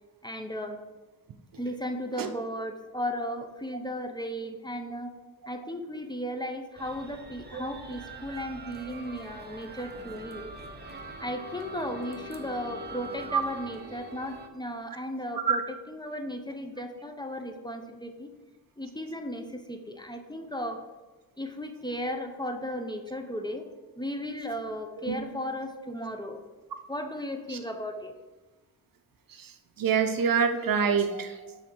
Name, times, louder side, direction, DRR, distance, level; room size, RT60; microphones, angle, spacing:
voice 1, 0.2-0.8 1.6-5.1 5.5-10.5 11.2-15.6 15.9-18.3 18.8-20.8 21.4-23.7 24.0-26.4 26.9-28.1, equal, 10° left, 5 dB, 0.7 m, -35 dB
sound 1, 6.8-14.5, right 2 dB, 25° right, 1.0 m, -43 dB
voice 2, 29.3-31.6, right 6 dB, 60° right, 7 dB, 0.8 m, -26 dB
8.1 x 3.5 x 6.2 m, 1.2 s
cardioid pair, 95°, 38 cm